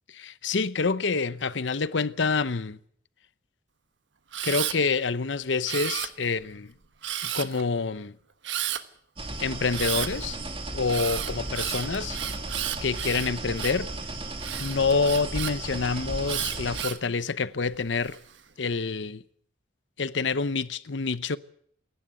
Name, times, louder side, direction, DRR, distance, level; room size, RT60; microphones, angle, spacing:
voice 1, 0.2-2.8 4.4-6.7 7.2-8.2 9.4-10.4 10.7-12.2 12.8-13.9 14.6-18.2 18.6-19.2 20.0-21.4, left 4 dB, 80° left, 0.8 m, -27 dB
Camera, 4.3-4.8 5.7-6.4 7.0-7.6 8.4-8.8 9.7-10.1 10.9-13.9 14.4-15.5 16.3-17.0 17.7-18.2, right 11 dB, 80° right, 1.3 m, -32 dB
sound 1, 9.2-16.8, right 2 dB, 30° right, 2.3 m, -35 dB
27.0 x 11.5 x 9.2 m
head